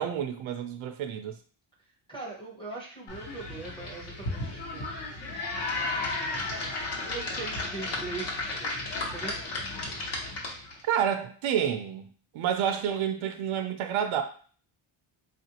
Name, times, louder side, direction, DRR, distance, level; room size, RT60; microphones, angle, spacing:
voice 1, 0.0-1.4 10.8-14.2, right 9 dB, 70° right, 6 dB, 0.6 m, -29 dB
voice 2, 2.1-5.0 7.0-9.5, right 3 dB, 10° left, -2 dB, 0.7 m, -41 dB
sound 1, 3.1-10.8, left 2 dB, 55° left, 0.9 m, -34 dB
3.5 x 2.5 x 2.8 m, 0.43 s
wide cardioid pair, 170°, 50 cm